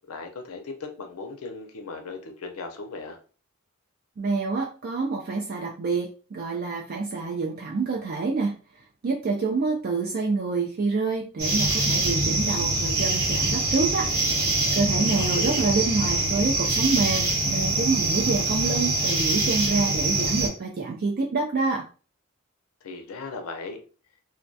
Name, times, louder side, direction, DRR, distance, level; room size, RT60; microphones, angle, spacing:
voice 1, 0.1-3.2 15.2-15.6 22.8-23.8, left 3 dB, 90° left, 5 dB, 0.6 m, -37 dB
voice 2, 4.2-8.6 9.0-14.1 14.7-21.8, right 4 dB, 45° right, 0 dB, 0.3 m, -27 dB
sound 1, 11.4-20.5, right 2 dB, 85° right, 1.0 m, -24 dB
2.2 x 2.2 x 2.6 m, 0.37 s
head